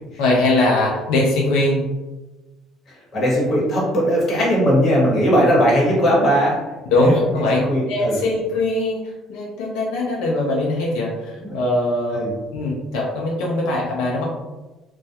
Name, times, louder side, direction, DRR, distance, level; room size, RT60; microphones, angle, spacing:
voice 1, 0.2-1.8 6.9-9.0 9.3-12.2 12.5-14.2, left 2 dB, 90° left, -2 dB, 0.5 m, -21 dB
voice 2, 3.1-6.6 7.0-7.1 7.5-8.2 11.4-11.5 12.1-12.3, equal, 35° left, -5 dB, 1.0 m, -18 dB
2.2 x 2.1 x 2.8 m, 1.1 s
cardioid pair, 135°, 0 cm